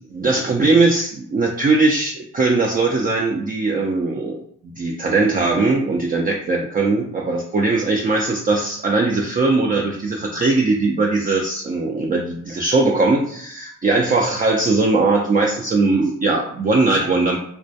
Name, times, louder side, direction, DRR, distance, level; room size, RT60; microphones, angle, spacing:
voice 1, 0.1-4.4 4.8-17.4, right 3 dB, 30° right, 0 dB, 0.4 m, -19 dB
2.2 x 2.1 x 2.7 m, 0.63 s
supercardioid pair, 50°, 32 cm